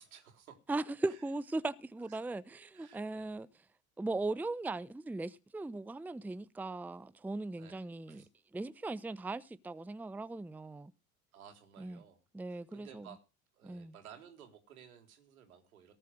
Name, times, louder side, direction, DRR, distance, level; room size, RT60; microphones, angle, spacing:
voice 1, 0.0-0.6 1.0-1.2 2.0-2.2 2.7-3.4 7.6-8.3 11.3-13.3 13.5-15.9, right 8 dB, 80° right, 4.1 m, -56 dB
voice 2, 0.7-3.5 4.0-8.2 8.5-10.9 11.8-12.0 12.3-13.1 13.6-13.9, right 2 dB, 5° right, 0.7 m, -38 dB
18.5 x 7.8 x 6.2 m
hypercardioid pair, 75°, 42 cm